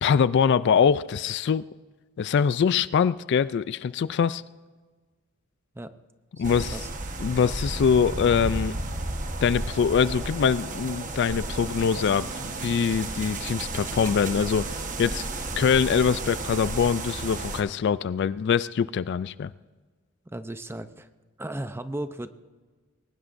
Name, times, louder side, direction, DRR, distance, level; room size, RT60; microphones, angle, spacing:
voice 1, 0.0-1.7 2.2-4.4 6.4-6.8 7.2-8.8 9.4-14.7 15.0-15.3 15.6-19.5, left 6 dB, 55° left, 17 dB, 0.3 m, -23 dB
voice 2, 6.4-6.9 20.3-21.1 21.4-22.3, right 1 dB, 10° right, 10 dB, 0.6 m, -36 dB
sound 1, 6.4-17.6, right 2 dB, 40° right, 1.2 m, -33 dB
21.5 x 19.0 x 2.6 m, 1.4 s
head